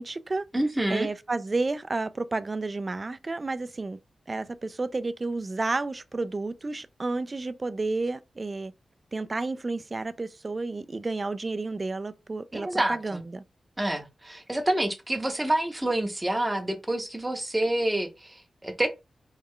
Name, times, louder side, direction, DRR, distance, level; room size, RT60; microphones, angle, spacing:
voice 1, 0.0-0.4 0.9-4.0 4.3-8.7 9.1-13.4, right 3 dB, 35° right, 0.3 m, -31 dB
voice 2, 0.5-1.1 12.5-13.2 13.8-18.9, right 1 dB, 15° right, 0.7 m, -28 dB
3.2 x 2.3 x 3.6 m
cardioid pair, 75°, 0 cm